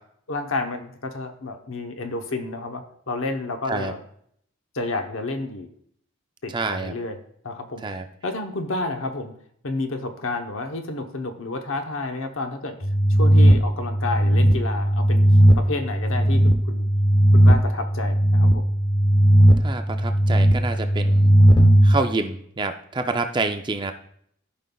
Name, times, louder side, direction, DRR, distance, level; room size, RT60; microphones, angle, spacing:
voice 1, 0.3-4.0 4.7-5.7 6.4-7.2 7.4-7.8 8.2-9.3 9.6-12.8 13.2-16.9 17.3-18.7, left 2 dB, 70° left, 6 dB, 0.9 m, -30 dB
voice 2, 6.5-7.0 7.8-8.1 19.6-21.4 21.8-23.9, right 3 dB, 20° right, 7 dB, 0.4 m, -27 dB
sound 1, 12.8-22.0, equal, 20° left, 0.7 m, -17 dB
14.5 x 5.3 x 2.3 m, 0.67 s
head